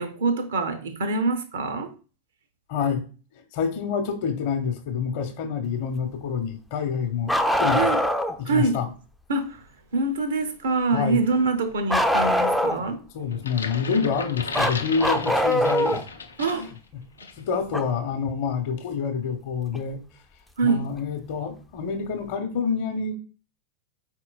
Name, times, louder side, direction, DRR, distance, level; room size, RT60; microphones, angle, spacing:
voice 1, 0.0-1.9 7.7-8.0 8.5-8.8 9.3-9.6 9.9-13.0 16.4-16.7 20.6-20.9, right 3 dB, 60° right, 0.7 m, -25 dB
voice 2, 2.7-3.0 3.5-7.9 8.4-8.9 10.9-11.2 13.1-16.0 16.4-17.0 17.4-20.0 20.6-23.1, left 6 dB, 50° left, 0.8 m, -27 dB
Bark, 7.3-8.4 11.9-12.9 14.5-16.0 17.7-17.8 19.7-19.8 20.9-21.0, equal, ahead, 0.4 m, -22 dB
sound 1, 13.3-16.8 17.2-17.4, left 5 dB, 75° left, 0.4 m, -36 dB
4.4 x 4.4 x 2.3 m
figure-of-eight pair, 90°, 0 cm